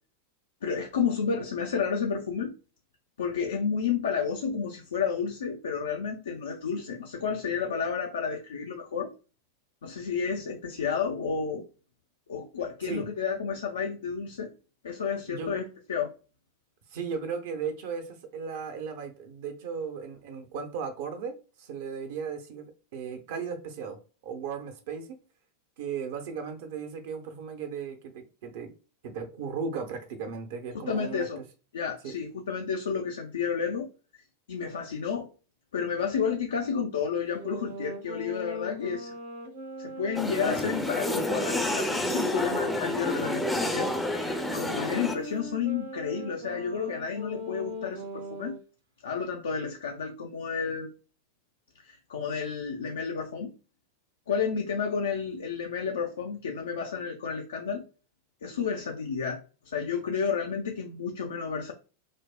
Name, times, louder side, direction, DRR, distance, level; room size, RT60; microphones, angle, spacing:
voice 1, 0.6-2.5 3.2-9.1 9.8-11.6 12.3-14.5 14.8-16.2 30.9-31.4 31.7-33.9 34.5-35.3 35.7-39.2 39.8-43.9 44.5-48.6 49.0-50.9 51.8-53.5 54.3-57.8 58.4-61.7, left 6 dB, 65° left, 3 dB, 0.5 m, -31 dB
voice 2, 16.9-25.1 25.8-28.7 29.0-31.4 32.0-32.1, right 6 dB, 50° right, 7 dB, 0.7 m, -36 dB
sound 1, 37.3-42.8 43.4-48.6, right 1 dB, 75° right, 1.2 m, -40 dB
sound 2, 40.2-45.1, left 2 dB, 5° left, 0.5 m, -29 dB
4.9 x 2.0 x 2.3 m, 0.34 s
figure-of-eight pair, 90°, 0 cm